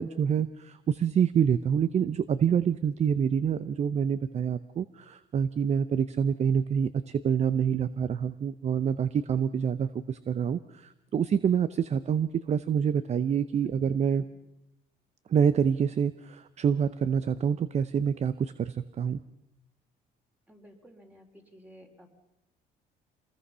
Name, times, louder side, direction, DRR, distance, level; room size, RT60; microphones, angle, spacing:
voice 1, 0.0-14.2 15.3-19.2, right 7 dB, 40° right, 14 dB, 0.7 m, -27 dB
voice 2, 13.7-14.2 20.5-22.1, equal, 10° right, 3 dB, 4.0 m, -53 dB
27.0 x 20.5 x 5.6 m, 0.87 s
cardioid pair, 110°, 17 cm